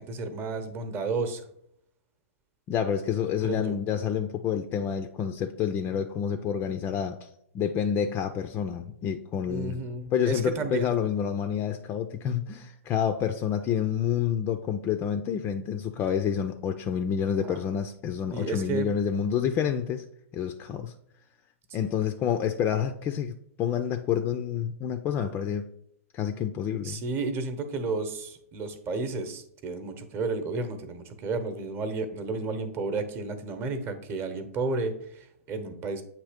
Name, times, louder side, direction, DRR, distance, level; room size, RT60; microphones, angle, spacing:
voice 1, 0.0-1.4 3.4-3.8 9.5-10.9 17.4-17.6 18.3-18.9 26.8-36.0, right 3 dB, 30° right, 8 dB, 0.9 m, -32 dB
voice 2, 2.7-7.3 7.5-9.8 10.1-20.0 20.3-20.9 21.7-25.6 26.1-27.0, left 8 dB, 25° left, 7 dB, 0.4 m, -28 dB
7.9 x 2.9 x 5.0 m, 0.71 s
hypercardioid pair, 120°, 8 cm